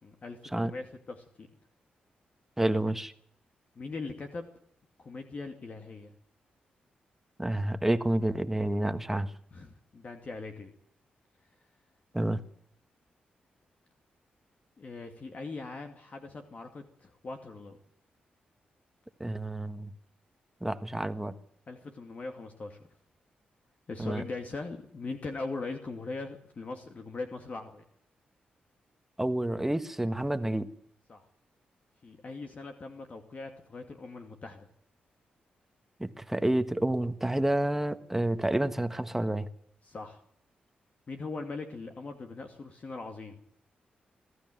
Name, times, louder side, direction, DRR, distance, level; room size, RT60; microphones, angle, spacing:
voice 1, 0.0-1.5 3.7-4.5 5.0-6.1 9.5-10.7 14.8-17.8 21.7-22.8 23.9-27.8 31.1-31.2 32.0-34.7 39.8-40.2 41.1-43.4, left 3 dB, 45° left, 5 dB, 2.4 m, -40 dB
voice 2, 2.6-3.1 7.4-9.3 12.1-12.4 19.2-19.9 20.6-21.3 24.0-24.2 29.2-30.7 36.0-39.5, right 1 dB, 10° right, 10 dB, 1.5 m, -29 dB
22.0 x 13.5 x 9.3 m, 0.67 s
cardioid pair, 80°, 3 cm